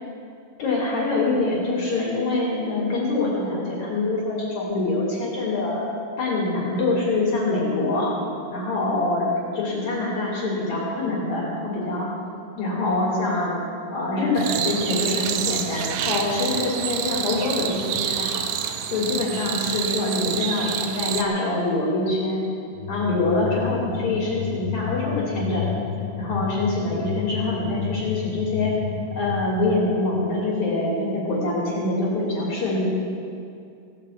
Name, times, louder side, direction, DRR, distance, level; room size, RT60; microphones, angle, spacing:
voice 1, 0.6-5.9 6.2-8.1 8.5-12.1 12.6-13.6 13.9-18.5 18.9-22.5 22.9-25.7 26.2-28.7 29.1-32.9, left 2 dB, 40° left, -5 dB, 3.4 m, -25 dB
sound 1, 14.4-21.2, right 9 dB, 85° right, 3.3 m, -28 dB
sound 2, 22.7-30.1, left 10 dB, 80° left, 3.2 m, -31 dB
17.0 x 8.1 x 8.4 m, 2.5 s
omnidirectional pair, 5.8 m